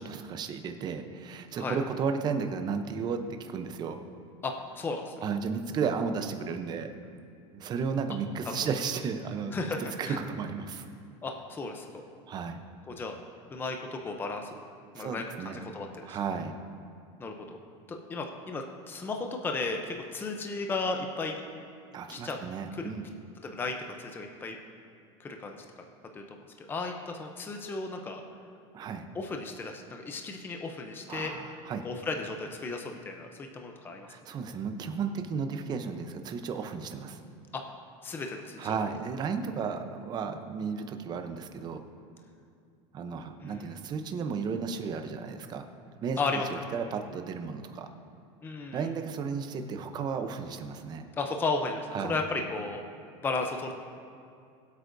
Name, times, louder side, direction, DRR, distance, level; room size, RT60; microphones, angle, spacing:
voice 1, 0.0-4.0 5.2-6.9 7.5-9.5 10.0-10.8 12.3-12.6 15.0-15.6 16.0-16.6 21.9-23.1 28.7-29.1 31.1-31.8 34.1-37.2 38.6-41.8 42.9-45.7 46.0-46.2 46.7-47.9 48.7-51.1 51.9-52.2, right 5 dB, 30° right, 7 dB, 0.7 m, -33 dB
voice 2, 4.4-5.1 8.5-8.6 9.5-10.2 11.2-11.9 12.9-13.2 13.5-14.5 14.9-16.2 17.2-17.3 17.9-21.4 22.1-22.4 22.7-22.9 23.4-24.6 25.2-25.6 26.1-28.2 29.1-31.3 31.8-34.1 37.5-37.6 38.0-38.6 43.4-43.7 46.2-46.5 48.4-48.9 51.2-52.8 53.2-53.7, left 3 dB, 15° left, 3 dB, 0.6 m, -34 dB
21.5 x 8.2 x 2.7 m, 2.4 s
supercardioid pair, 150°, 15 cm